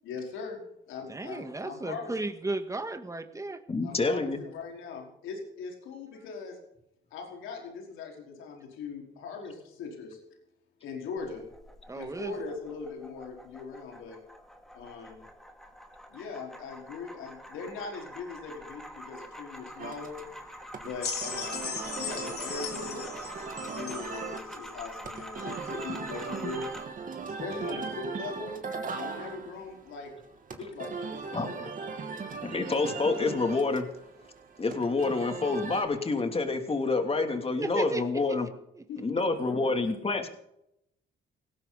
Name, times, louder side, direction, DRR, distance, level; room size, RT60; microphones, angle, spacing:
voice 1, 0.0-0.6 0.9-2.1 3.8-6.6 7.1-10.2 10.8-11.4 11.9-14.2 14.7-15.2 16.1-20.2 20.8-23.2 23.6-26.7 27.3-28.6 29.0-30.1 30.6-31.2 31.4-31.6 38.9-39.2 39.5-40.0, left 4 dB, 90° left, 1 dB, 4.8 m, -40 dB
voice 2, 1.1-3.6 11.9-12.3 27.7-27.8 37.6-38.2 38.8-38.9, right 2 dB, 15° right, 8 dB, 1.9 m, -34 dB
voice 3, 3.7-4.4 31.3-31.7 32.4-33.9 34.6-38.5 39.0-40.3, left 3 dB, 30° left, 5 dB, 3.0 m, -28 dB
sound 1, 11.2-26.9, equal, ahead, 2.6 m, -46 dB
sound 2, 19.8-35.8, right 4 dB, 45° right, 2.7 m, -39 dB
sound 3, 21.0-24.3 25.2-25.3, left 6 dB, 55° left, 3.9 m, -37 dB
18.5 x 16.5 x 4.2 m, 0.78 s
cardioid pair, 90°, 20 cm